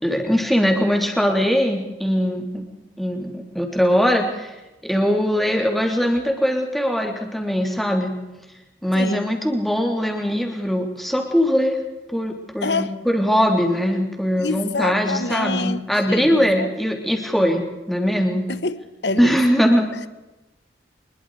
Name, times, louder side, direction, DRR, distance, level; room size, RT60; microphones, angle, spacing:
voice 1, 0.0-2.6 3.0-4.5 4.8-8.1 8.8-11.8 12.1-18.5 19.2-19.9, equal, ahead, 2 dB, 3.3 m, -21 dB
voice 2, 8.9-9.3 12.6-12.9 14.4-16.7 18.5-19.4, left 3 dB, 85° left, 13 dB, 1.4 m, -27 dB
26.0 x 22.0 x 4.9 m, 1.0 s
head